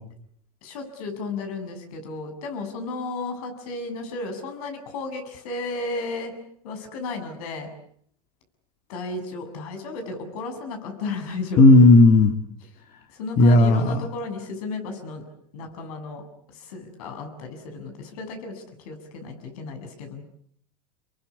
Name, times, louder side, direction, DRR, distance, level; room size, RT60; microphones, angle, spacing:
voice 1, 0.6-6.3 6.6-7.7 8.9-11.7 13.1-15.2 15.5-16.2 16.6-20.2, left 3 dB, 70° left, 6 dB, 7.6 m, -34 dB
voice 2, 11.6-12.3 13.4-14.0, left 2 dB, 40° left, 7 dB, 2.5 m, -13 dB
28.0 x 22.5 x 8.5 m, 0.65 s
supercardioid pair, 115°, 19 cm